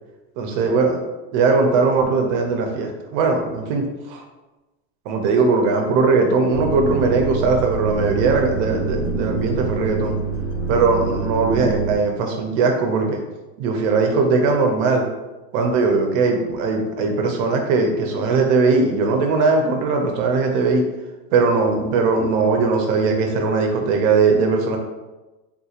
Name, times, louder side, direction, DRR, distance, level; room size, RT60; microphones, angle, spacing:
voice 1, 0.4-1.0 1.3-4.2 5.1-10.1 10.7-13.2 13.6-15.1 15.5-20.8 21.3-24.8, right 4 dB, 55° right, 3 dB, 0.6 m, -19 dB
sound 1, 6.5-12.0, right 4 dB, 75° left, 1.5 m, -26 dB
3.7 x 2.8 x 2.4 m, 1.1 s
supercardioid pair, 140°, 48 cm